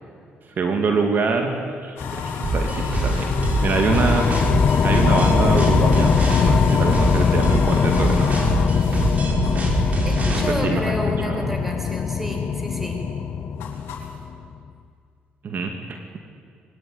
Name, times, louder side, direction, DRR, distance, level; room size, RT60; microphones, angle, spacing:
voice 1, 0.6-4.3 4.8-6.1 6.4-8.4 10.6-11.0 11.2-11.5 15.4-16.2, right 4 dB, 55° right, 4 dB, 2.4 m, -25 dB
sound 1, 2.0-10.8 11.2-11.8 12.2-14.2, left 5 dB, 85° left, 3.7 m, -33 dB
sound 2, 2.0-14.5, left 7 dB, 50° left, 1.0 m, -22 dB
sound 3, 2.4-10.4, right 2 dB, 40° right, 5.9 m, -24 dB
voice 2, 10.0-13.0, equal, 5° right, 3 dB, 5.6 m, -30 dB
22.5 x 18.0 x 9.7 m, 2.3 s
cardioid pair, 80°, 4 cm